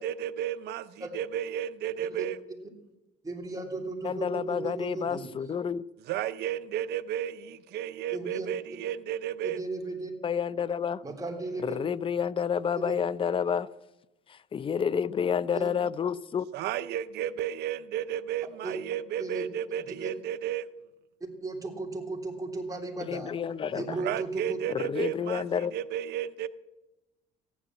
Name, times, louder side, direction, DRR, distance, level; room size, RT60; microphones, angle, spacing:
voice 1, 0.0-2.4 6.1-9.6 16.5-20.7 23.9-25.4 25.7-26.5, right 11 dB, 75° right, 0.7 m, -33 dB
voice 2, 3.2-5.3 8.1-8.5 9.4-10.1 11.0-11.8 12.8-13.0 15.5-15.7 18.6-18.8 19.2-19.5 20.0-20.1 21.4-23.3 23.7-24.6, right 3 dB, 20° right, 3.4 m, -35 dB
voice 3, 4.0-5.8 10.2-11.0 11.6-13.7 14.3-16.5 23.0-24.0 24.7-25.7, left 7 dB, 30° left, 0.5 m, -29 dB
14.5 x 10.5 x 7.5 m
cardioid pair, 110°, 17 cm